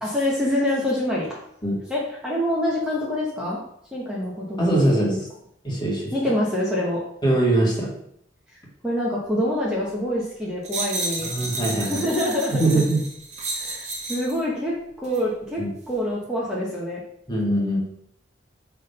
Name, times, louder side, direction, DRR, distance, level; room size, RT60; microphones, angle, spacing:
voice 1, 0.0-1.4 1.9-3.6 3.9-5.2 6.1-7.0 8.5-11.3 11.8-12.8 13.5-17.0, left 1 dB, 5° right, -6 dB, 1.2 m, -26 dB
voice 2, 4.6-5.2 5.6-6.1 7.2-7.9 11.2-12.0 12.5-13.0 15.6-15.7 17.3-17.8, right 1 dB, 25° left, -3 dB, 2.0 m, -22 dB
sound 1, 10.6-14.4 15.0-15.2, right 2 dB, 40° right, 1.3 m, -31 dB
6.4 x 3.5 x 5.4 m, 0.71 s
head